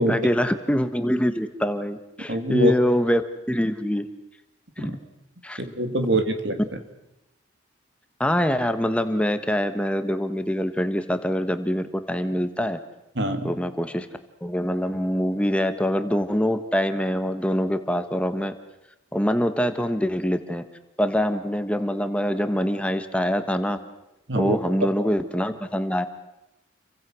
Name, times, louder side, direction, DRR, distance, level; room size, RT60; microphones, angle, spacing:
voice 1, 0.0-3.2 3.5-4.1 4.8-5.0 5.4-5.6 8.2-12.8 13.4-14.1 14.4-18.5 19.1-20.6 21.0-23.8 24.3-26.1, equal, 5° left, 9 dB, 1.4 m, -24 dB
voice 2, 2.3-2.7 4.8-5.0 5.6-6.6 13.2-13.5 24.3-24.6, right 1 dB, 60° right, 7 dB, 2.5 m, -24 dB
30.0 x 24.0 x 6.3 m, 0.89 s
head